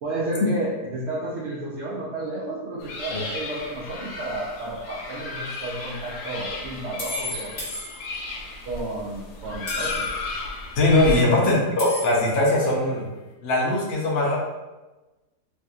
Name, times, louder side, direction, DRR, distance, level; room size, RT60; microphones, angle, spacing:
voice 1, 0.0-7.5 8.7-10.1 11.3-11.4, right 2 dB, 70° right, -6 dB, 0.6 m, -32 dB
sound 1, 2.8-11.2, left 2 dB, 85° left, 1.2 m, -34 dB
sound 2, 5.5-5.6 7.0-8.4 9.7-10.3 11.8-12.5, left 1 dB, 35° left, 1.4 m, -35 dB
voice 2, 10.8-13.1 13.4-14.4, left 2 dB, 60° left, -3 dB, 0.6 m, -20 dB
3.4 x 2.7 x 2.3 m, 1.1 s
omnidirectional pair, 1.7 m